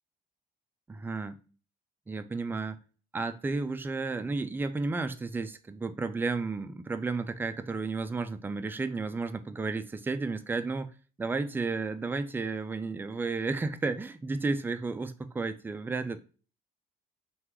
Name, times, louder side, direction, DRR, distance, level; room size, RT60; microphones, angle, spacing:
voice 1, 0.9-1.4 2.1-2.8 3.1-10.9 11.2-16.2, right 3 dB, 10° right, 0.3 m, -32 dB
2.9 x 2.4 x 3.4 m
cardioid pair, 110°, 17 cm